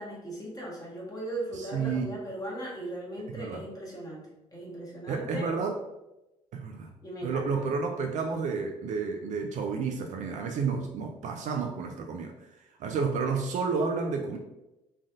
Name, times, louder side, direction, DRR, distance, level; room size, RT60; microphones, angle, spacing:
voice 1, 0.0-4.2 4.5-5.5 7.0-7.5, right 1 dB, 20° left, -4 dB, 1.2 m, -38 dB
voice 2, 1.6-2.2 3.3-3.6 5.1-5.8 6.5-6.9 7.2-12.3 12.8-14.4, right 5 dB, 45° right, 3 dB, 0.4 m, -31 dB
3.1 x 2.4 x 2.5 m, 0.95 s
figure-of-eight pair, 50°, 17 cm